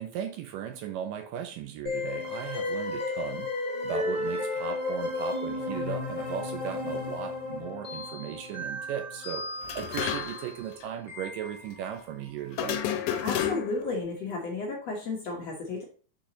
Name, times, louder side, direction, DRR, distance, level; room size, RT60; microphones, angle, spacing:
voice 1, 0.0-3.5 3.8-9.5 9.8-12.8, right 9 dB, 80° right, 2.1 m, -37 dB
sound 1, 1.9-12.0, left 2 dB, 25° left, 2.7 m, -34 dB
sound 2, 9.6-10.6 10.8-10.9 12.5-13.9, left 10 dB, 85° left, 2.4 m, -31 dB
voice 2, 13.2-15.8, left 3 dB, 60° left, 1.8 m, -33 dB
6.3 x 6.1 x 2.9 m
omnidirectional pair, 4.2 m